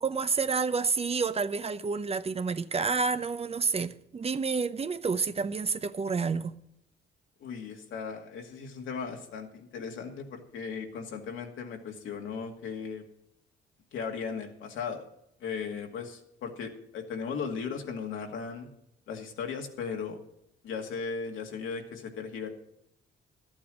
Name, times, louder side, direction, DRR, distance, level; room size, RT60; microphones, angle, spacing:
voice 1, 0.0-6.6, right 5 dB, 30° right, 0.7 m, -29 dB
voice 2, 7.4-13.0 13.9-15.1 15.4-18.7 19.1-20.2 20.6-22.5, left 5 dB, 80° left, 2.2 m, -37 dB
13.0 x 8.8 x 6.3 m
cardioid pair, 90°, 20 cm